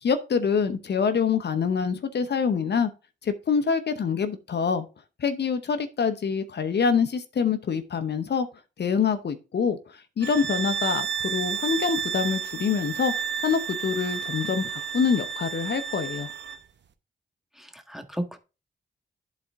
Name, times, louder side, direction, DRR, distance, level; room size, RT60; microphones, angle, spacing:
voice 1, 0.0-2.9 3.2-4.9 5.2-8.5 8.8-13.1 13.4-16.3, left 6 dB, 65° left, 0.9 m, -25 dB
sound 1, 10.2-16.6, right 7 dB, 70° right, 0.8 m, -31 dB
voice 2, 17.6-18.4, right 1 dB, ahead, 1.5 m, -34 dB
10.5 x 4.2 x 3.5 m
cardioid pair, 50°, 19 cm